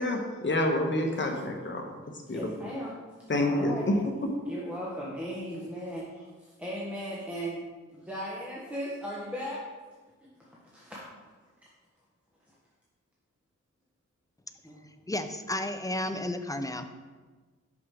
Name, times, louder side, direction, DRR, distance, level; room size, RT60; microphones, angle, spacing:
voice 1, 0.0-1.8 2.3-2.4 3.3-3.9, left 1 dB, 40° left, 2 dB, 1.1 m, -27 dB
voice 2, 2.3-3.0 3.4-3.9 4.5-6.3 6.6-7.6 7.9-9.6 10.4-11.0 14.6-14.8, equal, 5° right, -6 dB, 1.2 m, -37 dB
voice 3, 15.1-17.0, left 1 dB, 10° left, 8 dB, 0.4 m, -32 dB
6.0 x 6.0 x 3.7 m, 1.4 s
wide cardioid pair, 85°, 29 cm